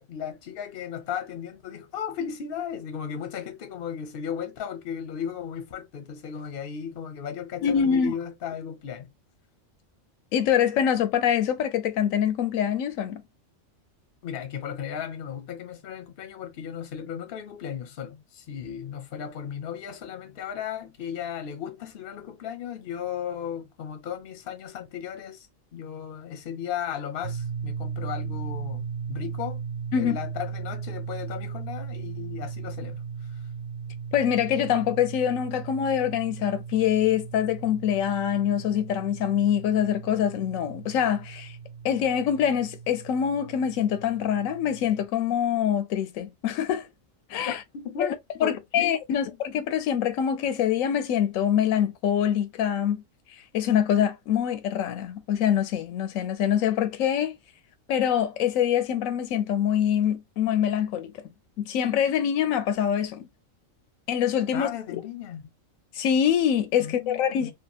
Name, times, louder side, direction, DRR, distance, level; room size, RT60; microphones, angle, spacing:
voice 1, 0.0-9.1 14.2-29.6 29.9-33.0 47.4-48.1 48.4-49.2 64.5-65.5 66.8-67.5, left 8 dB, 55° left, 0.8 m, -35 dB
voice 2, 7.6-8.1 10.3-13.2 29.9-30.2 34.1-41.6 41.8-46.9 47.3-47.6 48.4-49.3 49.5-53.0 53.5-57.4 57.9-61.1 61.6-63.3 64.1-64.7 65.9-67.5, left 9 dB, 85° left, 1.0 m, -24 dB
sound 1, 27.2-45.1, right 6 dB, 75° right, 1.2 m, -37 dB
2.8 x 2.3 x 2.3 m
omnidirectional pair, 1.3 m